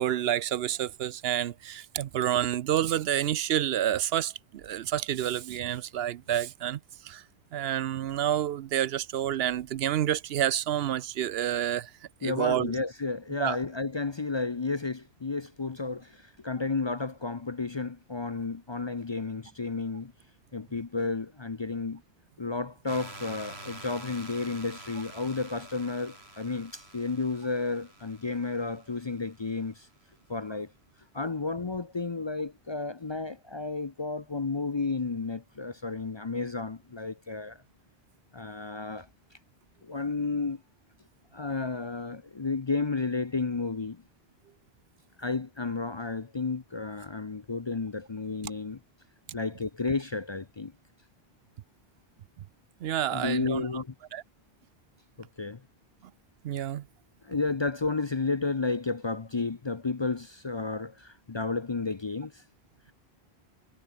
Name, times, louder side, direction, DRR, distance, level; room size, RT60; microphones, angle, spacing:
voice 1, 0.0-6.8 7.0-7.2 7.5-11.9 12.2-12.7 13.4-13.6 52.8-53.8 54.1-54.2 56.4-56.8, right 11 dB, 75° right, 0.8 m, -29 dB
voice 2, 12.2-20.1 20.5-22.0 22.4-29.9 30.3-30.7 31.1-37.6 38.3-39.1 39.8-40.6 41.3-44.0 45.2-48.8 49.3-50.7 53.1-53.9 55.2-55.6 57.2-62.4, left 3 dB, 30° left, 0.6 m, -32 dB
sound 1, 22.9-29.7, right 1 dB, 90° right, 7.8 m, -47 dB
omnidirectional pair, 1.1 m